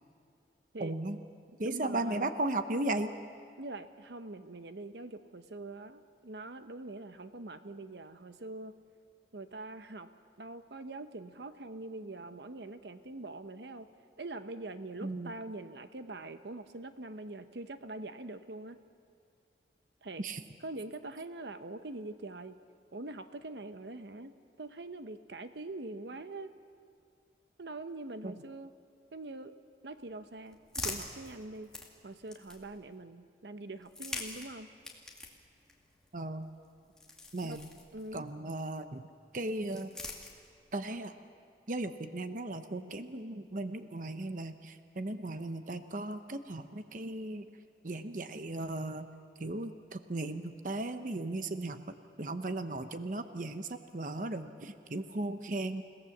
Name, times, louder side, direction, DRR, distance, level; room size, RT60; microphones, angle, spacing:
voice 1, 0.8-1.2 1.6-3.1 15.0-15.3 20.2-20.4 28.2-28.3 36.1-36.5 37.3-37.6 38.1-39.0 39.3-39.9 40.7-41.1 41.7-47.5 47.8-49.1 49.4-51.8 52.2-55.8, right 2 dB, 45° right, 9 dB, 0.9 m, -36 dB
voice 2, 1.6-2.3 3.6-8.7 9.3-10.1 10.4-13.9 14.2-18.8 20.0-20.2 20.6-22.6 22.9-24.3 24.6-26.5 27.6-28.7 29.1-29.5 29.8-31.7 32.0-34.7 37.4-37.6 37.9-38.2, right 2 dB, 75° right, 10 dB, 0.9 m, -43 dB
sound 1, 29.9-32.9 33.8-38.4 39.3-40.8, left 2 dB, 5° left, 2.3 m, -45 dB
29.5 x 18.0 x 7.2 m, 2.2 s
head